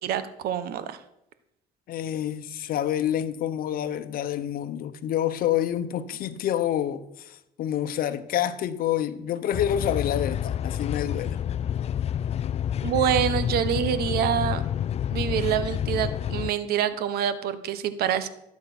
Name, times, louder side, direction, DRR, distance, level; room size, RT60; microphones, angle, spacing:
voice 1, 0.0-1.0 12.8-14.6 15.1-18.3, right 9 dB, 80° right, 1.2 m, -26 dB
voice 2, 1.9-11.4, left 11 dB, 70° left, 1.1 m, -28 dB
sound 1, 9.5-16.5, left 10 dB, 40° left, 0.4 m, -28 dB
17.5 x 8.6 x 6.0 m
cardioid pair, 115°, 16 cm